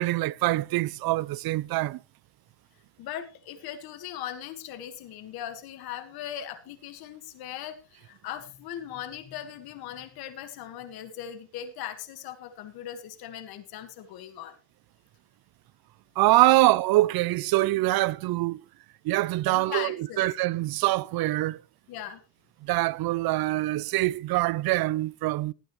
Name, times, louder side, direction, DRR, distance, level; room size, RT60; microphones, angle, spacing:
voice 1, 0.0-2.0 16.2-18.6 19.0-21.6 22.6-25.5, right 18 dB, 80° right, 0.6 m, -24 dB
voice 2, 3.0-14.6 19.5-20.2 21.9-22.2, left 10 dB, 90° left, 1.7 m, -39 dB
20.0 x 9.2 x 3.1 m
supercardioid pair, 65°, 36 cm